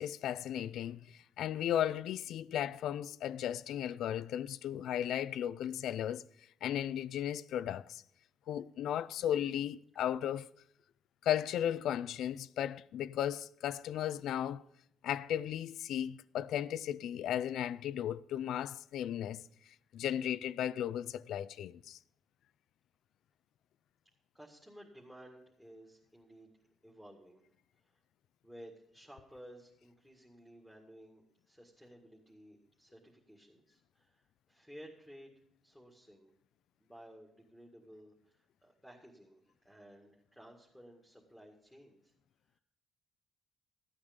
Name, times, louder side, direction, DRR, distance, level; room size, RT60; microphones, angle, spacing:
voice 1, 0.0-6.2 6.6-8.0 8.5-10.5 11.2-14.6 15.0-19.4 19.9-22.0, left 10 dB, 80° left, 0.4 m, -35 dB
voice 2, 24.3-26.5 26.8-27.5 27.8-28.0 28.4-35.3 35.6-36.3 36.8-42.1 42.5-42.6, equal, 5° right, 2.0 m, -56 dB
13.0 x 8.7 x 5.2 m
cardioid pair, 90°, 0 cm